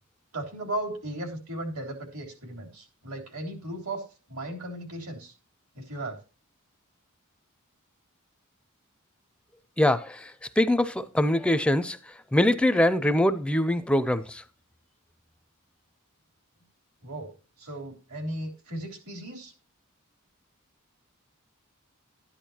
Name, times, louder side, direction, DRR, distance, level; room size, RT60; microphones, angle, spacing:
voice 1, 0.3-5.3 5.8-6.2 17.0-19.5, right 1 dB, 75° right, 3.6 m, -36 dB
voice 2, 9.8-14.4, left 1 dB, 5° left, 0.4 m, -24 dB
13.0 x 10.0 x 2.8 m
head